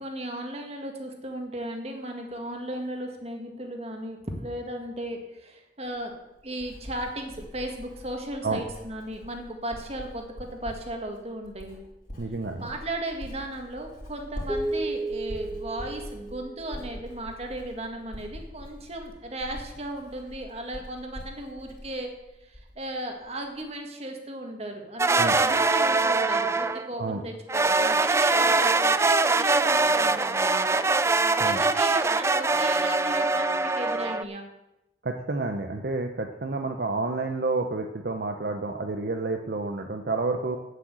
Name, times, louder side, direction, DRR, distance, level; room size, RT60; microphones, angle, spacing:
voice 1, 0.0-6.1 6.4-11.8 12.6-22.1 22.5-30.9 31.4-34.4, right 1 dB, 35° right, 3 dB, 1.8 m, -36 dB
Writing, 5.9-22.9 23.2-23.6, equal, 45° left, 3.6 m, -44 dB
voice 2, 12.2-12.7 25.2-25.4 27.0-27.2 31.4-31.6 35.0-40.6, right 3 dB, 60° right, 4 dB, 0.8 m, -29 dB
sound 1, 14.5-17.1, right 2 dB, 10° left, 1.3 m, -33 dB
sound 2, 25.0-26.9 27.5-34.2, right 3 dB, 15° right, 0.3 m, -23 dB
9.0 x 7.8 x 7.6 m, 0.93 s
head